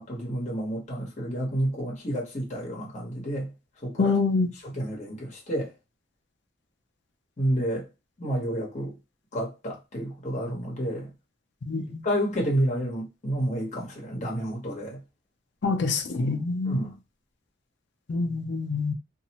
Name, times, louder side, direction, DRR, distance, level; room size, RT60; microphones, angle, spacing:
voice 1, 0.0-3.5 3.8-4.2 4.5-5.7 7.4-7.9 8.2-9.0 9.3-11.1 11.8-15.0 16.6-16.9, right 1 dB, 40° left, 0.9 m, -30 dB
voice 2, 4.0-4.5 11.6-12.0 15.6-16.8 18.1-18.9, left 4 dB, 65° left, 0.5 m, -26 dB
2.6 x 2.0 x 2.8 m
head